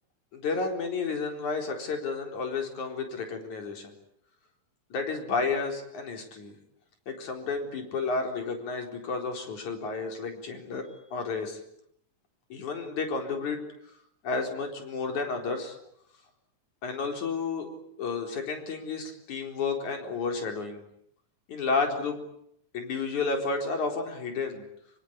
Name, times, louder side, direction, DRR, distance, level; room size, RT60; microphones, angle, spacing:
voice 1, 0.3-3.9 4.9-6.6 7.1-11.6 12.5-13.6 14.2-15.8 16.8-17.7 18.0-20.8 21.5-22.2 22.7-24.7, left 4 dB, 70° left, 3 dB, 5.6 m, -31 dB
25.5 x 25.5 x 8.9 m, 0.73 s
omnidirectional pair, 3.5 m